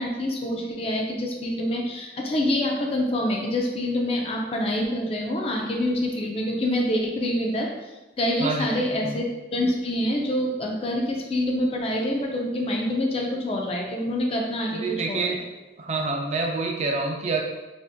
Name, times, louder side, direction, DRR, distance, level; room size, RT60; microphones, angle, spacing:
voice 1, 0.0-7.7 8.2-15.4, left 1 dB, 30° left, 0 dB, 0.4 m, -26 dB
voice 2, 8.4-9.2 14.7-15.4 15.8-17.4, right 3 dB, 35° right, 1 dB, 0.4 m, -27 dB
2.8 x 2.7 x 3.4 m, 1.1 s
head